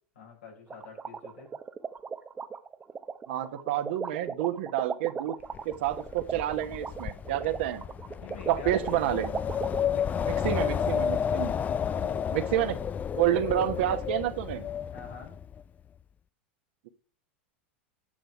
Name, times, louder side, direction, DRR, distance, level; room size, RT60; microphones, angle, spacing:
voice 1, 0.1-1.5 8.2-9.0 9.7-10.4 11.5-12.5 14.9-15.3, left 6 dB, 85° left, 0 dB, 5.1 m, -46 dB
sound 1, 0.7-9.8, right 6 dB, 20° right, 0.7 m, -37 dB
voice 2, 3.3-5.4 5.6-7.8 8.5-9.3 10.3-11.5 12.3-12.8 13.2-14.7, right 12 dB, 70° right, 8 dB, 1.3 m, -29 dB
Wind, 5.5-15.6, left 8 dB, 25° left, 0.4 m, -31 dB
10.0 x 6.4 x 4.8 m, 0.39 s
hypercardioid pair, 105°, 6 cm